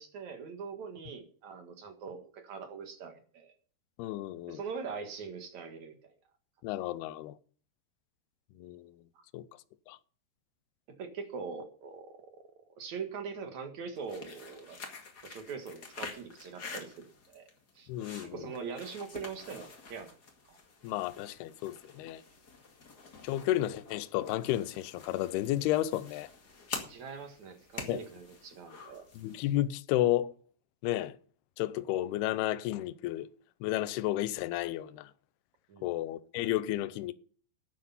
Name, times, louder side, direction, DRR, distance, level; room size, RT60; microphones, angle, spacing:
voice 1, 0.0-3.5 4.5-6.1 9.2-9.3 11.0-12.5 12.8-14.8 15.2-17.5 17.8-17.9 18.2-20.1 20.5-20.6 26.9-29.1 35.7-35.9, right 5 dB, 55° right, 2.2 m, -42 dB
voice 2, 4.0-4.6 6.6-7.3 8.6-8.8 9.3-9.4 9.9-10.0 17.9-18.4 20.8-22.2 23.2-26.3 27.9-28.0 29.2-30.3 30.8-31.2 31.6-33.3 33.6-35.1 35.8-37.1, left 14 dB, 80° left, 2.5 m, -32 dB
sound 1, 14.0-29.6, left 4 dB, 35° left, 1.6 m, -47 dB
11.5 x 9.7 x 5.6 m
omnidirectional pair, 4.9 m